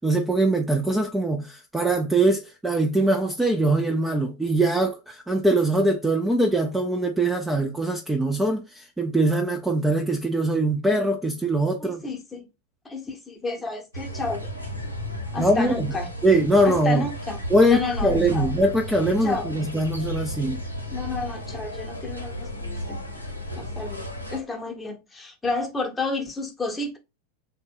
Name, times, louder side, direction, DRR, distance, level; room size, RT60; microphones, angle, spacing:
voice 1, 0.0-12.0 15.4-15.9 16.2-17.1 17.5-20.6, right 1 dB, 5° right, 0.4 m, -22 dB
voice 2, 11.8-12.5 12.8-14.5 15.3-16.1 16.6-18.5 19.2-19.5 20.9-23.0 23.6-27.0, left 3 dB, 10° left, 0.8 m, -31 dB
sound 1, 13.9-24.4, left 1 dB, 90° left, 0.8 m, -33 dB
3.3 x 2.1 x 3.6 m
figure-of-eight pair, 90°, 0 cm